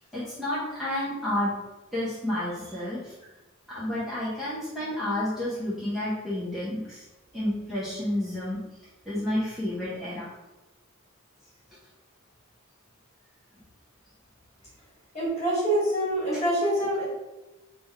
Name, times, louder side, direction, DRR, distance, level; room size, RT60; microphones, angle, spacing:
voice 1, 0.0-1.5 1.9-3.1 3.7-7.0 7.3-8.8 9.0-10.3, left 1 dB, ahead, -11 dB, 0.6 m, -30 dB
voice 2, 15.1-17.0, right 1 dB, 30° left, -7 dB, 1.3 m, -25 dB
3.3 x 2.1 x 3.4 m, 1.0 s
head